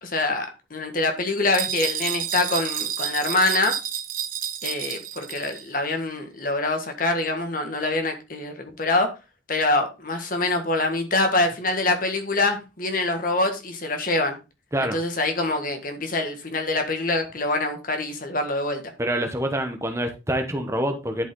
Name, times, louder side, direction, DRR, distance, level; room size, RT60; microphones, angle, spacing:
voice 1, 0.0-3.7 4.6-9.1 9.5-14.4 14.9-18.8, left 2 dB, 50° left, 1.7 m, -25 dB
sound 1, 1.5-5.7, right 9 dB, 50° right, 0.9 m, -30 dB
voice 2, 19.0-21.3, right 1 dB, 15° right, 1.0 m, -26 dB
11.0 x 5.4 x 3.8 m
head